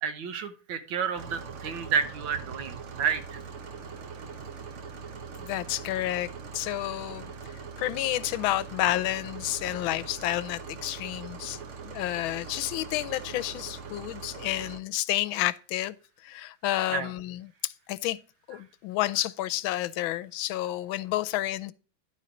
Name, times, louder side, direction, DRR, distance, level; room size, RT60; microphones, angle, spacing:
voice 1, 0.0-3.4 16.9-17.1, right 7 dB, 75° right, 1.8 m, -30 dB
sound 1, 1.1-14.8, right 5 dB, 55° right, 0.8 m, -42 dB
voice 2, 5.4-6.3 6.5-7.2 7.8-11.6 11.8-16.0 16.2-18.2 18.5-21.7, left 15 dB, 85° left, 1.4 m, -30 dB
10.5 x 4.2 x 5.1 m
omnidirectional pair, 2.2 m